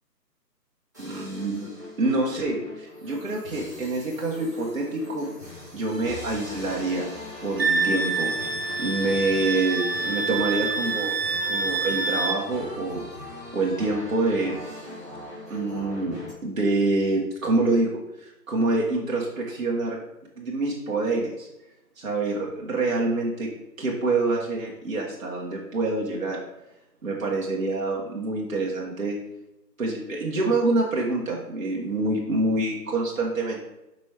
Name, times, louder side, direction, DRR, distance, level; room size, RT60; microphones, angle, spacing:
sound 1, 0.9-16.3, left 1 dB, 10° right, 0.9 m, -40 dB
voice 1, 1.0-1.7 2.0-5.3 5.7-7.1 7.4-8.3 8.8-11.1 11.4-13.1 13.5-14.6 15.5-20.0 20.4-21.5 22.0-23.5 23.8-26.4 27.0-29.2 29.8-33.6, right 2 dB, 55° right, -2 dB, 1.5 m, -26 dB
Wind instrument woodwind instrument, 7.6-12.4, right 4 dB, 75° right, 1.2 m, -26 dB
7.6 x 5.3 x 3.4 m, 0.95 s
figure-of-eight pair, 155°, 50 cm